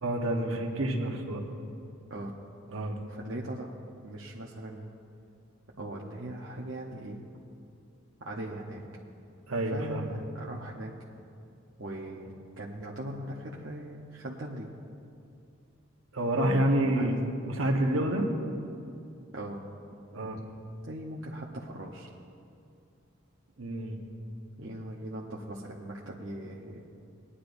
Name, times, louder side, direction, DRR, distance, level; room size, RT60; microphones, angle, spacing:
voice 1, 0.0-1.4 2.7-3.0 9.5-10.0 16.1-17.2 17.5-18.3 20.1-20.4 23.6-24.0, right 1 dB, 75° right, 2 dB, 1.2 m, -28 dB
voice 2, 3.1-3.7 4.0-4.9 5.8-7.2 8.2-8.8 9.7-11.2 11.8-14.7 17.0-17.2 19.3-19.7 20.8-22.1 24.6-26.8, right 1 dB, 60° right, -4 dB, 0.8 m, -40 dB
20.0 x 9.9 x 2.6 m, 2.5 s
head